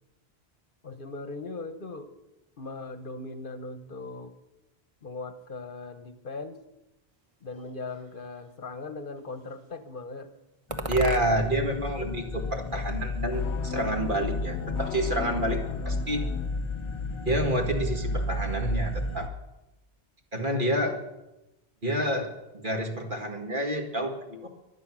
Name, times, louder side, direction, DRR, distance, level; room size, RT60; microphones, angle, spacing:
voice 1, 0.8-2.1 2.6-4.3 5.0-6.6 7.4-10.3 15.0-15.2, left 3 dB, 55° left, 9 dB, 1.1 m, -39 dB
sound 1, 7.5-8.5 9.2-9.8 10.7-11.6 11.9-13.0, right 3 dB, 30° right, 1.1 m, -41 dB
sound 2, 10.7-19.3, left 2 dB, 30° left, 0.7 m, -32 dB
voice 2, 10.9-16.3 17.3-19.3 20.3-21.1 21.8-24.5, right 1 dB, 50° right, 3 dB, 2.2 m, -29 dB
sound 3, 13.3-16.5, left 8 dB, 80° left, 1.0 m, -38 dB
23.5 x 9.3 x 6.2 m, 0.96 s
omnidirectional pair, 1.1 m